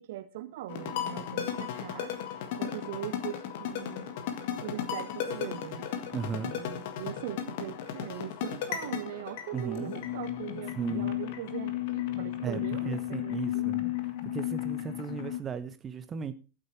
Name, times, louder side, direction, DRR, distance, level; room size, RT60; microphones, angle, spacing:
voice 1, 0.0-2.3 2.6-4.1 4.6-5.9 6.5-13.7, right 13 dB, 55° right, 1.0 m, -41 dB
sound 1, 0.7-15.4, left 11 dB, 50° left, 1.6 m, -34 dB
voice 2, 6.1-6.6 9.5-9.9 10.8-11.1 12.4-12.6 12.8-13.8 14.2-16.3, right 6 dB, 20° right, 1.0 m, -35 dB
14.0 x 8.1 x 4.7 m
figure-of-eight pair, 90°, 0 cm